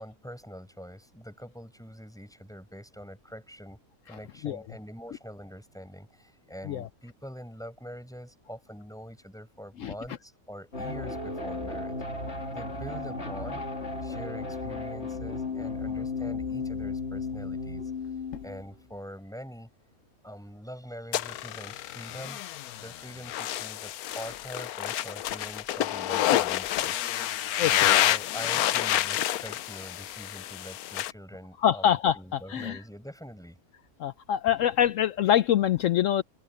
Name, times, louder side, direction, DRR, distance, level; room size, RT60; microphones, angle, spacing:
voice 1, 0.0-12.0 12.5-13.6 14.0-17.9 18.4-19.7 20.2-22.4 22.8-27.0 27.5-33.6, equal, ahead, 7.7 m, -44 dB
sound 1, 10.7-18.6, left 3 dB, 50° left, 3.0 m, -34 dB
sound 2, 21.1-31.1, left 13 dB, 85° left, 1.1 m, -28 dB
voice 2, 31.6-32.8 34.0-36.2, left 10 dB, 70° left, 0.9 m, -25 dB
omnidirectional pair, 1.5 m